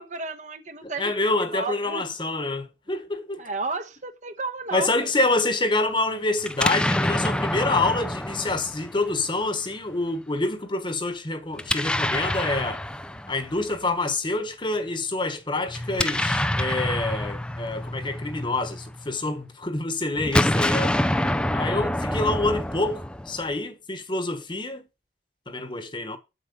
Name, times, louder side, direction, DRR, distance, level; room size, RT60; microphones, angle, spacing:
voice 1, 0.0-2.0 3.4-5.1 6.1-6.2 22.1-22.3, right 3 dB, 45° right, 1.2 m, -33 dB
voice 2, 0.8-3.4 4.7-12.8 13.3-20.9 21.5-24.9 25.5-26.2, left 2 dB, 30° left, 1.3 m, -27 dB
Explosion, 6.4-9.5 11.5-13.8 15.7-19.1 20.2-23.5, left 1 dB, 5° left, 0.5 m, -27 dB
8.3 x 7.5 x 5.4 m
head